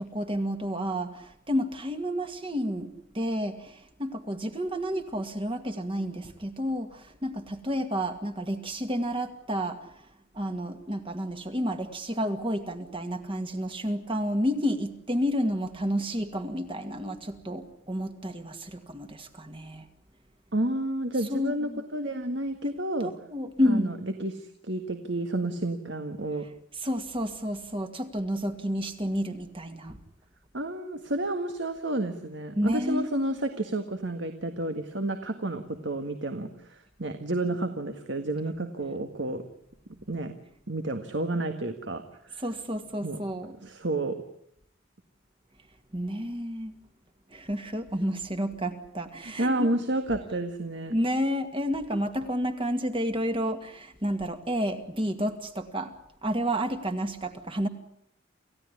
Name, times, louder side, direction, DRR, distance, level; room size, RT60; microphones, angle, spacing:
voice 1, 0.0-9.9 10.3-19.9 21.2-21.8 23.0-23.9 26.8-30.0 32.6-33.1 42.4-43.5 45.9-46.8 47.3-49.7 50.9-56.0 56.2-57.7, equal, 25° right, 7 dB, 2.1 m, -30 dB
voice 2, 20.5-23.1 23.7-23.9 24.2-26.4 30.5-39.4 40.1-40.3 40.7-42.0 43.0-43.2 43.6-44.1 49.4-50.9, right 1 dB, 55° right, 7 dB, 1.8 m, -30 dB
28.5 x 16.0 x 9.9 m, 0.74 s
head